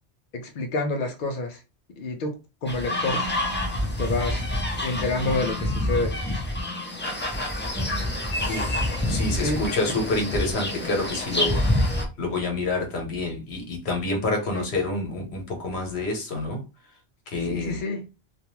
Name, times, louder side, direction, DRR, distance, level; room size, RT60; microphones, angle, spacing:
voice 1, 0.3-1.6 2.0-2.3 2.6-3.2 4.0-4.4 4.8-6.2 9.0-9.1 9.4-9.6 14.5-14.6 17.5-18.0, left 2 dB, 60° left, 0.6 m, -28 dB
sound 1, 2.7-12.1, left 1 dB, 20° left, 0.3 m, -27 dB
voice 2, 9.1-11.6 12.2-16.6 17.3-17.8, left 2 dB, 75° left, 1.1 m, -27 dB
2.5 x 2.2 x 2.9 m
omnidirectional pair, 1.1 m